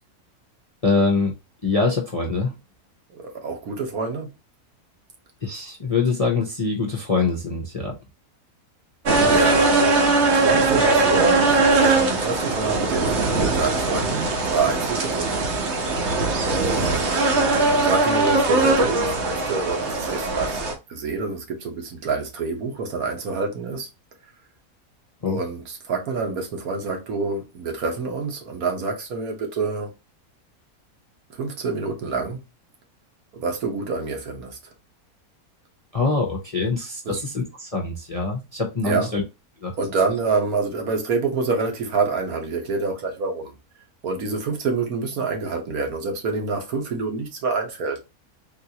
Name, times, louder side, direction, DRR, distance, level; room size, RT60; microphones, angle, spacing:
voice 1, 0.8-1.3 1.6-2.5 5.4-7.9 25.2-25.4 35.9-39.2 39.6-39.7, left 4 dB, 35° left, 0.6 m, -24 dB
voice 2, 3.1-4.3 9.3-15.3 16.4-20.6 20.9-23.9 25.3-29.9 31.3-32.4 33.3-34.6 37.0-37.2 38.8-39.2 39.8-43.6 44.0-48.0, right 4 dB, 70° right, 1.5 m, -27 dB
sound 1, 9.1-20.7, right 3 dB, 55° right, 1.0 m, -20 dB
3.9 x 2.5 x 2.8 m
omnidirectional pair, 1.6 m